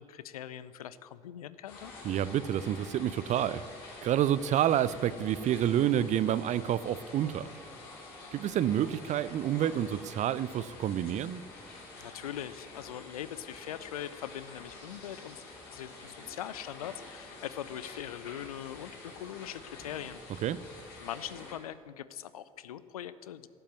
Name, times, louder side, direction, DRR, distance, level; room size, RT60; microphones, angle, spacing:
voice 1, 0.0-1.9 12.0-20.2 21.0-23.5, left 11 dB, 75° left, 15 dB, 0.5 m, -42 dB
sound 1, 1.7-21.5, left 2 dB, 55° left, 4.5 m, -48 dB
voice 2, 2.0-3.6 4.0-7.5 8.3-11.4 20.4-20.6, right 10 dB, 40° right, 17 dB, 0.5 m, -28 dB
12.5 x 7.9 x 9.5 m, 2.2 s
figure-of-eight pair, 55°, 19 cm